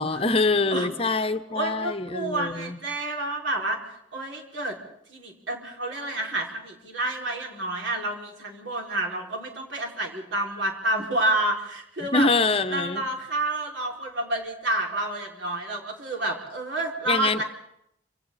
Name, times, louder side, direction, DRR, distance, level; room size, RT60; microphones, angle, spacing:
voice 1, 0.0-2.8 12.0-13.1 17.1-17.4, left 3 dB, 30° left, 11 dB, 0.8 m, -25 dB
voice 2, 0.7-4.8 5.1-12.3 12.7-17.4, right 1 dB, 80° right, 0 dB, 5.3 m, -29 dB
28.0 x 27.0 x 4.1 m, 0.74 s
head